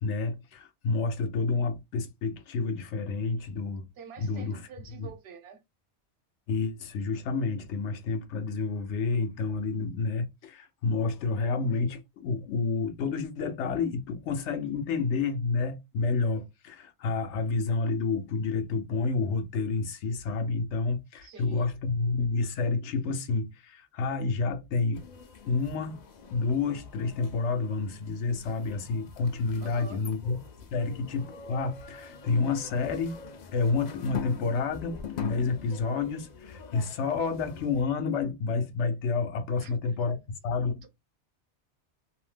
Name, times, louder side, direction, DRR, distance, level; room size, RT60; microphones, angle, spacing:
voice 1, 0.0-3.8 4.2-4.6 5.0-5.1 6.5-25.0 25.5-26.0 26.3-30.4 30.7-33.2 33.5-40.2 40.4-40.8, left 4 dB, 80° left, 0.9 m, -29 dB
voice 2, 3.9-5.6 21.2-21.7 29.6-30.0 39.6-40.2, right 6 dB, 65° right, 1.0 m, -48 dB
sound 1, 24.9-37.8, left 7 dB, 55° left, 0.5 m, -44 dB
2.6 x 2.1 x 3.2 m
omnidirectional pair, 1.2 m